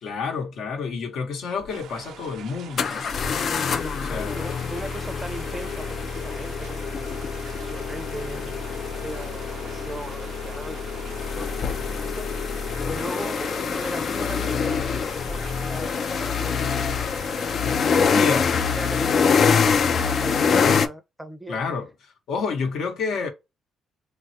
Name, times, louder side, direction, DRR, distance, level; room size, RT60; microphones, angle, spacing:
voice 1, 0.0-3.1 3.9-4.5 18.1-18.6 20.5-20.9 21.5-23.3, left 5 dB, 80° left, 0.9 m, -29 dB
sound 1, 1.6-1.7 2.8-20.9, left 6 dB, 55° left, 0.3 m, -25 dB
sound 2, 1.7-20.9, right 9 dB, 80° right, 0.4 m, -44 dB
voice 2, 3.5-7.2 7.5-10.8 11.4-11.5 11.9-12.3 12.9-16.7 17.0-17.2 17.6-21.6, right 1 dB, 10° right, 0.5 m, -38 dB
3.2 x 2.3 x 2.6 m
cardioid pair, 90°, 0 cm